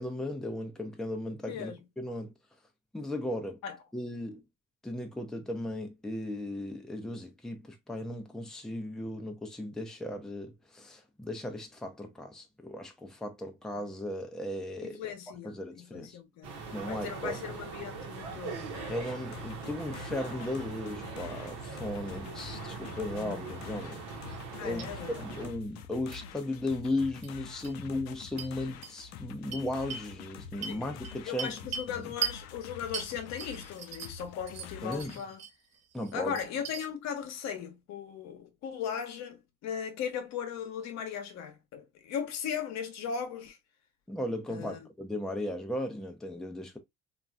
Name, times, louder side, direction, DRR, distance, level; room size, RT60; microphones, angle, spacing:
voice 1, 0.0-1.7 2.0-2.3 2.9-3.6 3.9-4.4 4.8-15.1 15.4-16.2 16.7-17.4 18.9-24.0 24.6-31.6 31.9-32.1 34.8-35.1 35.9-36.4 44.1-46.8, left 1 dB, ahead, 0.6 m, -36 dB
voice 2, 1.5-1.8 3.6-3.8 14.8-18.7 22.2-22.4 23.2-23.4 24.6-25.3 30.7-30.8 31.2-35.4 36.1-43.6 44.5-44.8, left 7 dB, 65° left, 0.9 m, -38 dB
sound 1, 16.4-25.5, right 4 dB, 85° right, 1.0 m, -41 dB
sound 2, 18.7-35.2, left 7 dB, 85° left, 0.5 m, -47 dB
sound 3, 24.2-24.5 24.8-24.9 26.1-26.2 27.2-27.3 27.6-27.7 28.4-28.5 28.8-28.9 29.5-30.1 30.6-31.9 32.2-32.4 32.9-34.2 34.5-35.5 35.9-36.9, right 7 dB, 60° right, 1.2 m, -38 dB
3.0 x 2.6 x 2.3 m
supercardioid pair, 85°, 30 cm